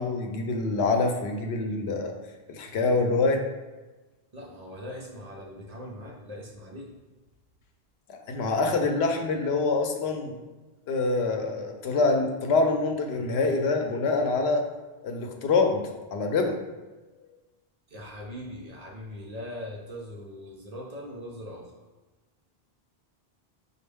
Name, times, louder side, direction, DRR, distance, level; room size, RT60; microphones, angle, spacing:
voice 1, 0.0-2.1 2.5-3.4 8.1-10.4 10.9-14.7 15.0-16.6, left 3 dB, 85° left, 3 dB, 0.8 m, -25 dB
voice 2, 4.3-6.9 17.9-21.7, left 1 dB, 45° right, -1 dB, 0.6 m, -40 dB
5.1 x 2.3 x 3.4 m, 1.2 s
omnidirectional pair, 1.0 m